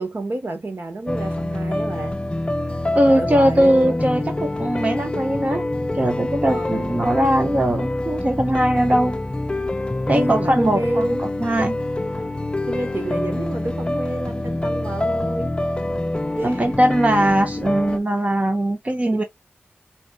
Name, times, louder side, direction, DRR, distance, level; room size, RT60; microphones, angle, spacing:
voice 1, 0.0-2.2 3.1-4.0 6.5-6.9 8.7-9.0 10.1-11.2 12.2-12.4 12.6-15.5 16.4-16.6 17.2-17.3 19.1-19.2, right 2 dB, 65° right, 1.7 m, -29 dB
sound 1, 1.1-18.0, left 1 dB, 25° left, 0.5 m, -26 dB
voice 2, 2.9-5.7 5.9-9.2 10.1-11.1 11.4-11.8 16.4-19.2, right 1 dB, 35° right, 1.0 m, -20 dB
4.4 x 4.2 x 2.6 m
wide cardioid pair, 70°, 4 cm